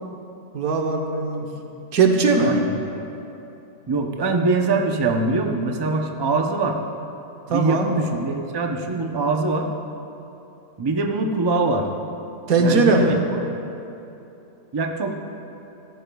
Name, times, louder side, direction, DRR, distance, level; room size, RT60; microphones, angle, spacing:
voice 1, 0.5-1.5 1.9-2.6 7.5-7.9 12.5-13.2, right 3 dB, 80° right, 2 dB, 1.4 m, -19 dB
voice 2, 2.4-2.8 3.9-6.8 7.5-9.7 10.8-11.9 12.6-13.1 14.7-15.1, right 3 dB, 35° right, 3 dB, 0.4 m, -23 dB
15.5 x 13.0 x 2.3 m, 2.9 s
omnidirectional pair, 1.5 m